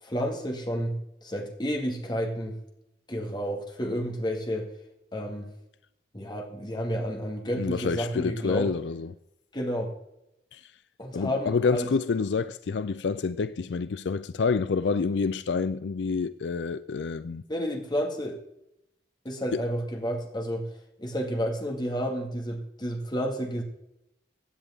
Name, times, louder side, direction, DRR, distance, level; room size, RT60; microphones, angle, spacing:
voice 1, 0.0-2.6 3.1-4.7 5.1-5.5 6.1-8.7 9.5-9.9 11.0-11.9 17.5-18.4 19.2-20.7 21.0-23.6, equal, 25° left, 2.0 m, -31 dB
voice 2, 7.6-9.1 10.5-10.6 11.1-17.4, left 4 dB, 85° left, 0.4 m, -28 dB
16.0 x 8.7 x 3.7 m
head